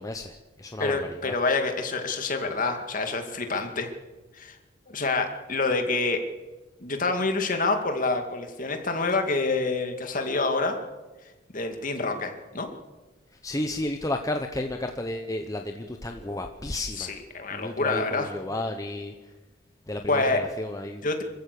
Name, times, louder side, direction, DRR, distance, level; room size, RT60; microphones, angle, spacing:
voice 1, 0.0-1.4 13.4-17.2 17.5-19.1 19.9-21.0, left 1 dB, 20° left, 4 dB, 1.0 m, -32 dB
voice 2, 0.8-3.9 4.4-4.6 4.9-6.2 6.8-10.8 11.5-12.7 17.0-18.3 20.1-20.4 21.0-21.2, left 3 dB, 45° left, 5 dB, 2.3 m, -27 dB
25.5 x 15.0 x 6.8 m, 1.2 s
head